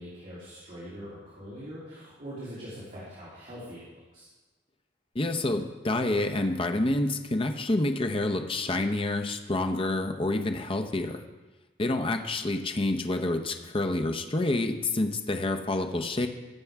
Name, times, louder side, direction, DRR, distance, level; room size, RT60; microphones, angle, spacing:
voice 1, 0.0-4.3, equal, 45° right, -9 dB, 3.0 m, -43 dB
voice 2, 5.1-11.2 11.8-16.3, left 2 dB, 30° left, 5 dB, 0.7 m, -28 dB
17.0 x 6.9 x 3.5 m, 1.2 s
head